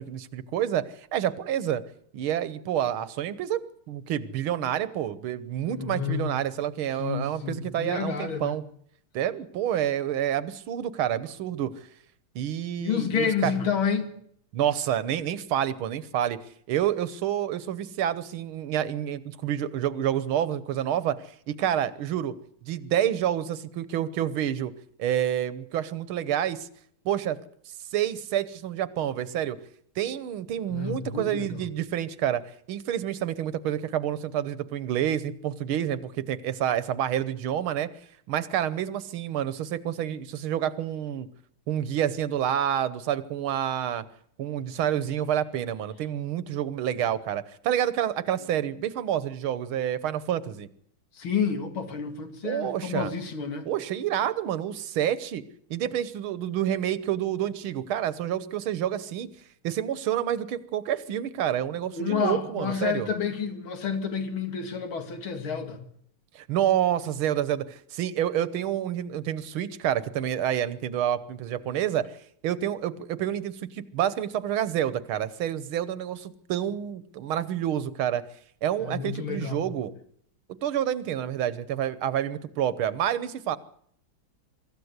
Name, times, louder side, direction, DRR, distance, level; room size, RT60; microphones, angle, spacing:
voice 1, 0.0-1.8 2.1-3.6 3.9-8.6 9.1-11.7 12.4-13.5 14.5-16.4 16.7-22.3 22.6-24.7 25.0-26.7 27.1-27.4 27.9-29.6 30.0-32.4 32.7-37.9 38.3-41.3 41.7-44.0 44.4-50.7 52.4-53.1 53.7-55.4 55.7-59.3 59.6-63.1 66.4-72.1 72.4-78.2 78.6-79.9 80.6-83.6, right 10 dB, 85° right, 1.9 m, -28 dB
voice 2, 5.7-6.3 7.0-8.6 12.8-14.1 30.7-31.6 51.1-53.7 61.9-65.8 78.8-79.7, left 6 dB, 80° left, 3.1 m, -29 dB
24.0 x 14.0 x 8.1 m
omnidirectional pair, 2.2 m